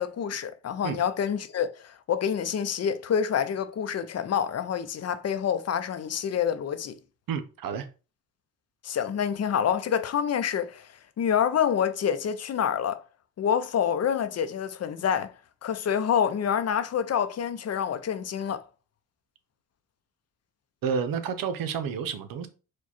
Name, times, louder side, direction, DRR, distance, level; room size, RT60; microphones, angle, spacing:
voice 1, 0.0-7.0 8.8-10.9 11.2-13.0 13.4-15.3 15.6-18.6, left 8 dB, 50° left, 0.6 m, -27 dB
voice 2, 7.3-7.9 20.8-22.5, right 6 dB, 80° right, 0.7 m, -30 dB
4.8 x 2.3 x 4.2 m
cardioid pair, 90°, 33 cm